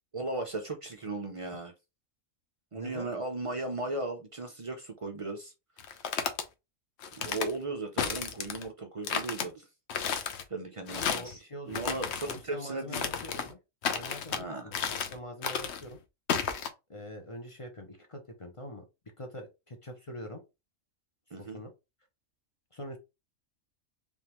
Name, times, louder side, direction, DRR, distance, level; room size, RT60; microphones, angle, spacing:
voice 1, 0.1-1.7 2.7-5.5 7.2-9.7 10.5-11.4 11.7-13.1 14.3-14.7 21.3-21.6, right 2 dB, 55° right, 0.3 m, -36 dB
voice 2, 2.7-3.1 10.9-11.8 12.3-13.6 13.9-16.0 16.9-18.8 19.2-20.4 21.4-21.7 22.7-23.0, left 1 dB, 30° left, 0.6 m, -44 dB
sound 1, 5.8-6.4 7.0-7.5 8.0-8.7 9.0-9.5 9.9-10.4 10.9-11.3 11.7-12.4 12.9-13.5 13.8-14.4 14.7-15.2 15.4-15.8 16.3-16.7, left 7 dB, 60° left, 0.9 m, -32 dB
3.5 x 3.5 x 3.0 m
omnidirectional pair, 1.4 m